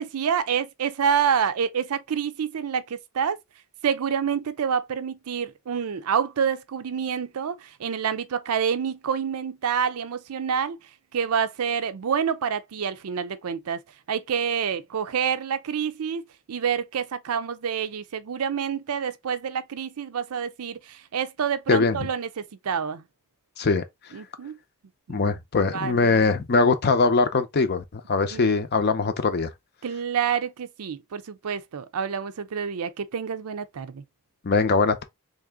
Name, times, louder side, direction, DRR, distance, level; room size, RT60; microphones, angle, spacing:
voice 1, 0.0-3.4 3.8-10.8 11.1-13.8 14.1-16.2 16.5-23.0 24.1-24.6 25.1-25.2 25.6-26.3 28.3-28.4 29.8-34.0, right 7 dB, 85° right, 0.5 m, -27 dB
voice 2, 25.1-29.5 34.4-35.0, left 4 dB, 50° left, 0.6 m, -22 dB
3.3 x 2.6 x 3.5 m
head